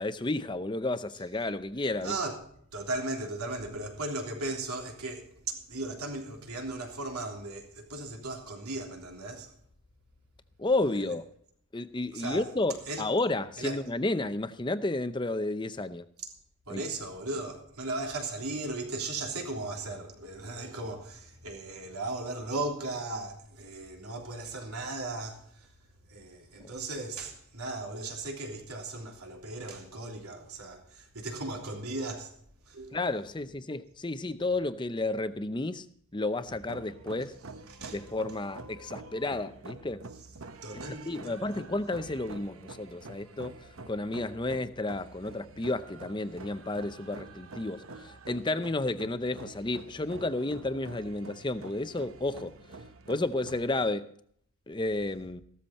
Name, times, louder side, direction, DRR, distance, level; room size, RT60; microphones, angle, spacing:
voice 1, 0.0-2.2 10.6-11.2 11.7-16.1 16.7-16.8 26.6-26.7 32.9-35.9 36.1-37.4 37.9-40.0 40.7-52.8 53.1-54.1 54.7-55.4, left 2 dB, 20° left, 0.6 m, -32 dB
voice 2, 2.0-2.4 2.7-9.5 12.1-12.5 12.9-13.0 13.6-13.8 16.7-25.7 26.1-32.4 32.7-33.0 37.7-38.0 40.6-41.4, right 2 dB, 90° right, 3.4 m, -37 dB
sound 1, 36.5-53.9, right 3 dB, 70° right, 1.0 m, -47 dB
15.0 x 13.0 x 4.2 m
head